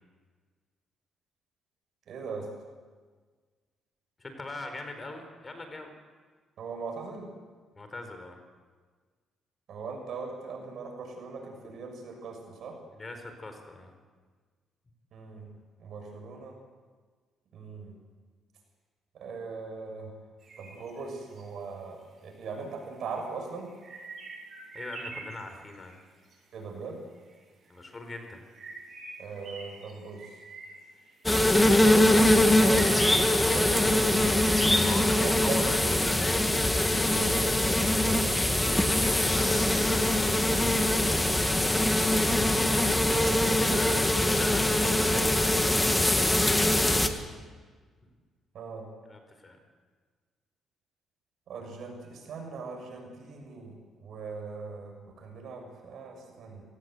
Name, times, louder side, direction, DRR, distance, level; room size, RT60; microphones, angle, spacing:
voice 1, 2.1-2.5 6.6-7.3 9.7-12.8 15.1-16.5 17.5-17.9 19.2-20.1 20.6-23.7 26.5-27.0 29.2-30.3 32.6-35.7 37.2-38.6 42.1-42.4 43.3-43.8 44.1-44.2 48.5-48.8 51.5-56.6, right 4 dB, 65° right, 2 dB, 7.0 m, -40 dB
voice 2, 4.2-5.9 7.7-8.4 12.9-13.9 24.7-25.9 27.7-28.4 34.7-36.5 39.0-40.3 43.7-47.1 49.0-49.6, left 2 dB, 30° left, 6 dB, 4.5 m, -41 dB
sound 1, 20.4-21.4 22.3-22.4 22.7-26.3 27.2-27.4 27.6-36.4, right 3 dB, 50° right, 7.5 m, -46 dB
sound 2, 31.3-47.1, left 1 dB, 10° left, 2.0 m, -23 dB
26.0 x 18.0 x 8.1 m, 1.5 s
cardioid pair, 90°, 0 cm